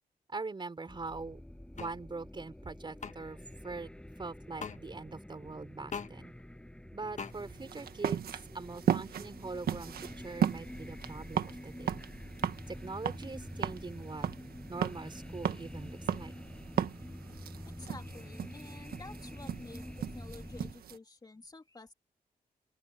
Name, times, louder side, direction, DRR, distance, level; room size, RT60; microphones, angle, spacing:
voice 1, 0.3-1.4 1.8-3.4 3.6-6.3 6.9-8.3 8.5-12.0 12.7-14.3 14.7-16.3, right 3 dB, 30° right, 4.6 m, -42 dB
sound 1, 0.9-20.7, left 1 dB, 5° left, 6.7 m, -47 dB
sound 2, 1.8-1.9 3.0-3.1 4.6-4.8 5.9-6.1 7.2-7.3, left 6 dB, 50° left, 1.5 m, -39 dB
sound 3, 7.3-21.0, right 9 dB, 90° right, 1.7 m, -37 dB
voice 2, 17.8-21.9, left 3 dB, 25° left, 2.5 m, -51 dB
open air
cardioid pair, 100°, 15 cm